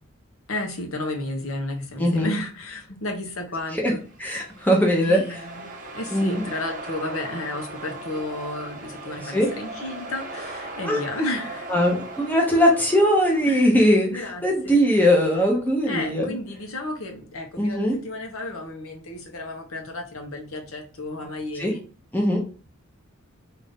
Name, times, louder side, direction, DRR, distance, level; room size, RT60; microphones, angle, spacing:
voice 1, 0.5-4.0 5.0-5.7 5.9-11.7 13.5-13.7 14.1-14.8 15.9-21.8, left 2 dB, 75° left, 3 dB, 0.9 m, -32 dB
voice 2, 2.0-2.3 3.8-3.9 4.2-5.2 6.1-6.4 9.2-9.5 10.8-11.0 11.7-16.3 17.6-18.0 21.6-21.7 22.1-22.4, equal, 10° left, -1 dB, 0.8 m, -20 dB
sound 1, 4.1-13.9, right 2 dB, 35° right, 0.7 m, -38 dB
3.9 x 2.6 x 3.5 m, 0.38 s
head